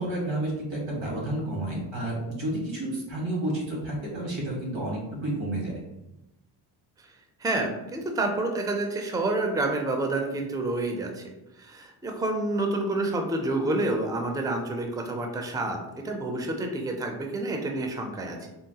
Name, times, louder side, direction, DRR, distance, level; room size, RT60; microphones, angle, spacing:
voice 1, 0.0-5.7, right 1 dB, 80° right, -2 dB, 1.3 m, -30 dB
voice 2, 7.4-11.3 11.6-18.5, right 2 dB, 10° right, 3 dB, 0.4 m, -28 dB
3.8 x 2.0 x 2.8 m, 0.93 s
cardioid pair, 70°, 46 cm